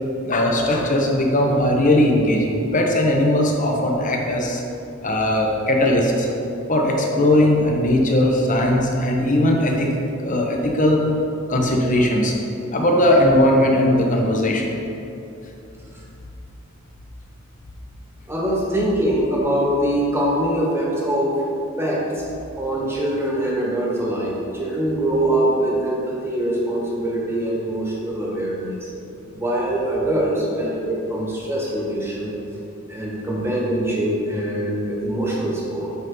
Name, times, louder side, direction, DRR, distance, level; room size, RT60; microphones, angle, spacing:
voice 1, 0.2-4.6 5.0-6.3 6.7-9.9 10.2-11.0 11.5-12.3 12.7-14.8, left 1 dB, 40° left, 0 dB, 0.9 m, -18 dB
voice 2, 18.3-21.4 21.8-22.3 22.6-28.9 29.3-32.3 32.9-35.9, right 1 dB, 10° right, -4 dB, 1.3 m, -23 dB
8.2 x 5.4 x 3.9 m, 2.8 s
head